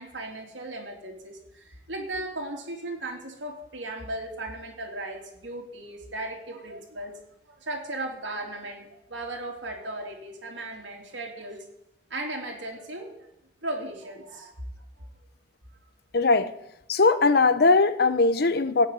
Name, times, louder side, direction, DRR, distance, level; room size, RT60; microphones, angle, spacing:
voice 1, 0.0-7.2 7.4-11.6 12.1-13.3 13.6-14.5 15.0-15.1, right 1 dB, 80° right, 1 dB, 3.1 m, -36 dB
voice 2, 16.1-16.5 16.9-18.9, left 3 dB, 55° left, 13 dB, 0.8 m, -20 dB
16.5 x 6.5 x 9.4 m, 0.86 s
head